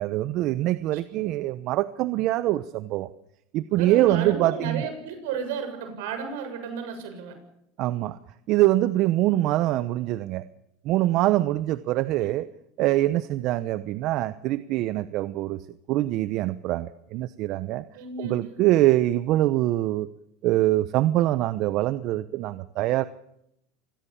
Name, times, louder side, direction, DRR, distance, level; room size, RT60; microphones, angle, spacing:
voice 1, 0.0-3.1 3.5-4.8 7.8-8.2 8.5-10.5 10.8-12.5 12.8-15.6 15.9-17.8 18.2-20.1 20.4-23.0, right 15 dB, 55° right, 14 dB, 0.9 m, -24 dB
voice 2, 3.8-7.4 12.2-12.3 17.9-18.6, right 5 dB, 80° right, 7 dB, 7.4 m, -33 dB
26.0 x 21.0 x 7.2 m, 0.80 s
supercardioid pair, 115°, 0 cm